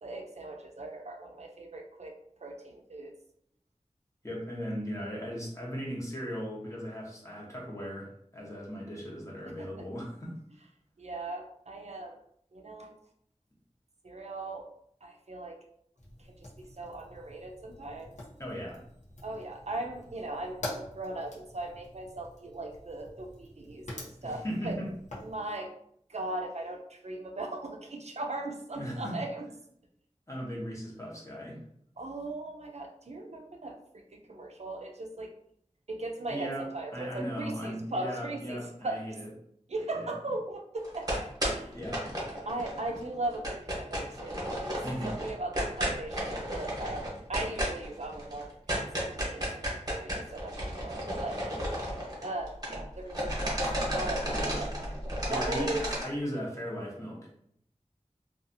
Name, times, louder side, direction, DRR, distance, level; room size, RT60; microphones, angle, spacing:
voice 1, 0.0-2.1 2.4-3.1 9.6-9.8 11.0-12.2 12.5-12.9 14.0-14.7 15.0-15.6 16.4-18.2 19.2-24.8 25.2-25.7 26.1-29.5 32.0-35.3 35.9-39.0 39.7-41.2 41.5-41.8 42.5-51.4 52.2-53.6 53.9-54.7 55.3-55.8, right 2 dB, 65° right, 3 dB, 0.4 m, -38 dB
voice 2, 4.2-10.3 18.4-18.8 24.2-24.9 28.8-29.2 30.3-31.6 36.3-36.6 36.9-39.3 40.0-40.1 41.7-42.1 44.8-45.2 55.3-55.7 56.0-57.2, equal, 25° left, -3 dB, 0.9 m, -37 dB
Fire, 16.0-25.3, left 1 dB, 80° left, 0.7 m, -46 dB
sound 1, 40.8-43.0 43.2-52.8 53.1-56.0, equal, 30° right, 0.9 m, -33 dB
2.6 x 2.3 x 2.6 m, 0.69 s
wide cardioid pair, 50°, 12 cm